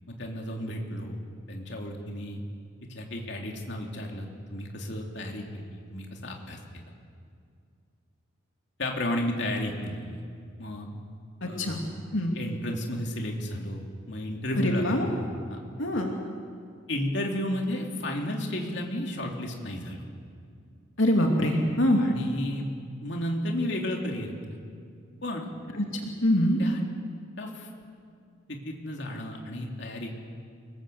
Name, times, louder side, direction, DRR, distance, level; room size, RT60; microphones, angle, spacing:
voice 1, 0.1-1.2 1.5-2.4 2.9-6.8 8.8-10.2 10.6-10.9 11.4-11.8 12.3-15.6 16.9-20.0 22.0-22.7 23.0-24.3 25.2-25.5 26.6-26.8 27.4-27.7 28.5-30.2, left 1 dB, 60° left, 1 dB, 2.9 m, -33 dB
voice 2, 11.4-11.8 12.1-12.3 14.6-15.1 15.8-16.1 21.0-22.0 25.8-25.9 26.2-26.6, left 1 dB, 75° left, 1 dB, 2.7 m, -24 dB
28.5 x 19.5 x 7.9 m, 2.3 s
head